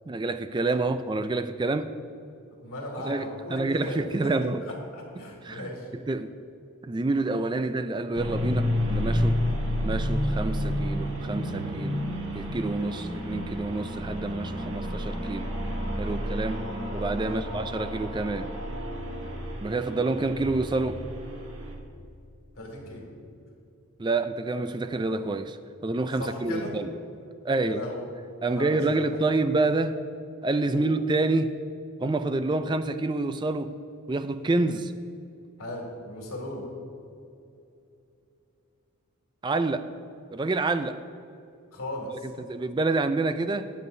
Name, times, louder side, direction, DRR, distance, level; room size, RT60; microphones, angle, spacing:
voice 1, 0.1-1.9 3.0-4.6 5.2-6.3 6.8-9.4 9.8-12.0 12.3-15.5 16.0-16.7 16.9-18.5 19.6-21.0 24.0-25.6 25.8-26.9 27.4-27.8 28.4-30.0 30.4-31.5 32.0-33.8 34.1-34.9 39.4-39.9 40.3-41.0 42.4-43.7, right 2 dB, 20° right, 10 dB, 0.3 m, -28 dB
voice 2, 2.6-4.3 4.6-5.9 9.4-9.6 17.3-17.5 19.0-19.3 22.6-23.1 26.2-26.7 27.6-28.1 28.4-29.4 30.6-30.9 35.6-36.7 41.7-42.3, left 1 dB, 90° left, 0 dB, 2.2 m, -37 dB
sound 1, 8.1-21.8, equal, 65° right, 1.5 m, -30 dB
20.0 x 7.2 x 2.7 m, 2.7 s
head